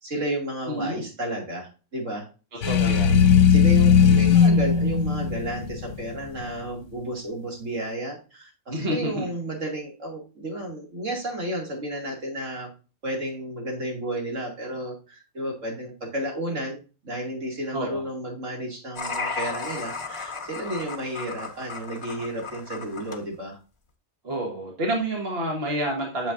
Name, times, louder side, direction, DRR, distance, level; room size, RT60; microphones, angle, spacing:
voice 1, 0.0-2.2 2.6-2.7 3.0-12.7 13.0-16.8 17.0-23.6, right 1 dB, 65° right, 0 dB, 2.9 m, -32 dB
voice 2, 0.7-1.0 2.6-3.1 8.7-9.3 17.7-18.0 24.2-26.3, right 1 dB, 45° right, 0 dB, 1.8 m, -28 dB
sound 1, 2.6-6.5, left 7 dB, 65° left, 1.1 m, -18 dB
sound 2, 19.0-23.2, left 4 dB, 25° left, 0.8 m, -34 dB
8.6 x 7.2 x 2.6 m, 0.33 s
omnidirectional pair, 1.4 m